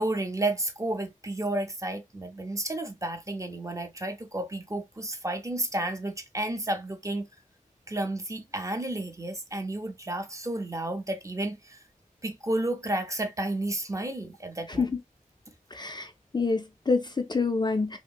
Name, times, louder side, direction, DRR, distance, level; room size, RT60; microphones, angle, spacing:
voice 1, 0.0-7.3 7.9-11.8 12.2-14.9, right 1 dB, 20° right, 0.6 m, -31 dB
voice 2, 15.7-18.0, left 4 dB, 30° left, 0.3 m, -27 dB
2.8 x 2.5 x 2.3 m
wide cardioid pair, 80°, 14 cm